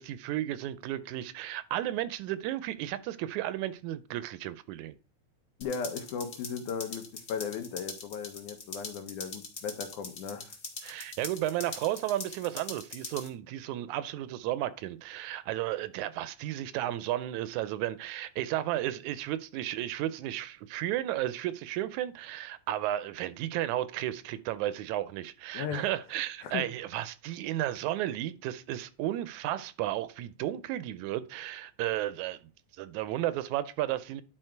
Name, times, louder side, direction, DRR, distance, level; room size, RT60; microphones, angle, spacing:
voice 1, 0.0-5.0 10.8-32.4 32.8-34.2, right 13 dB, 80° right, 1.9 m, -33 dB
voice 2, 5.6-10.6 25.5-25.9 26.4-26.7, left 6 dB, 80° left, 2.4 m, -36 dB
sound 1, 5.6-13.3, left 4 dB, 55° left, 0.9 m, -43 dB
11.0 x 3.9 x 4.5 m
omnidirectional pair, 3.5 m